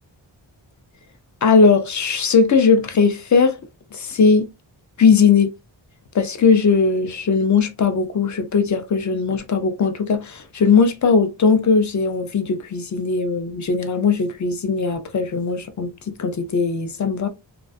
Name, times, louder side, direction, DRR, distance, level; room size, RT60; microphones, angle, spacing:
voice 1, 1.4-3.6 3.9-4.5 5.0-5.5 6.1-17.3, left 5 dB, 40° left, 0.4 m, -18 dB
2.3 x 2.3 x 2.4 m
wide cardioid pair, 105°, 45 cm